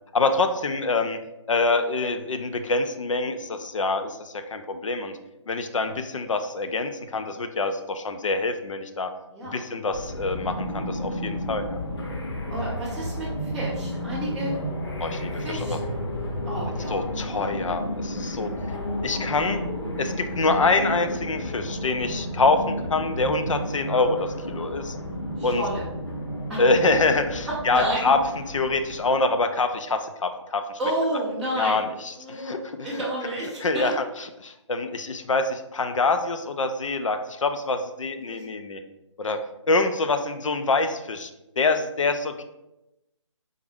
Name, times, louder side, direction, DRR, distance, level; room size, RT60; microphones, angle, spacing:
voice 1, 0.1-1.2 1.5-5.2 5.5-9.1 9.4-11.8 15.0-15.8 16.9-18.5 19.0-19.6 20.0-25.0 25.4-25.6 26.6-30.6 31.6-33.0 33.6-38.8 39.2-39.4 39.7-41.3 41.6-42.4, left 3 dB, 75° left, 7 dB, 0.5 m, -25 dB
sound 1, 9.9-29.1, equal, 55° left, 0.8 m, -32 dB
voice 2, 12.5-14.5 15.4-15.8 16.5-17.0 17.3-17.5 19.1-19.7 25.4-25.8 26.5-26.6 27.5-28.1 30.8-31.8 32.1-33.9 38.3-38.4, right 1 dB, ahead, -11 dB, 0.4 m, -31 dB
3.6 x 2.6 x 3.4 m, 0.93 s
figure-of-eight pair, 150°, 16 cm